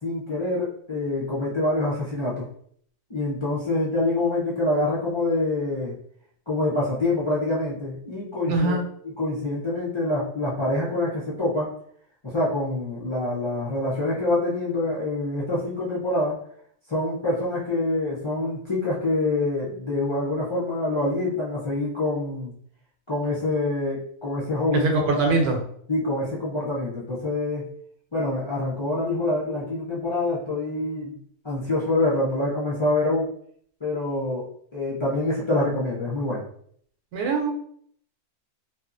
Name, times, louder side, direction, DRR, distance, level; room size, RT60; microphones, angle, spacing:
voice 1, 0.0-2.5 3.1-5.9 6.5-8.8 9.2-11.7 12.2-16.4 16.9-22.5 23.1-25.4 25.9-27.7 28.1-31.2 31.4-33.3 33.8-34.5 34.7-36.5, left 2 dB, 50° left, -8 dB, 0.3 m, -26 dB
voice 2, 8.5-8.8 24.7-25.6 37.1-37.5, right 3 dB, 85° right, 3 dB, 1.1 m, -22 dB
2.8 x 2.3 x 2.5 m, 0.62 s
omnidirectional pair, 1.6 m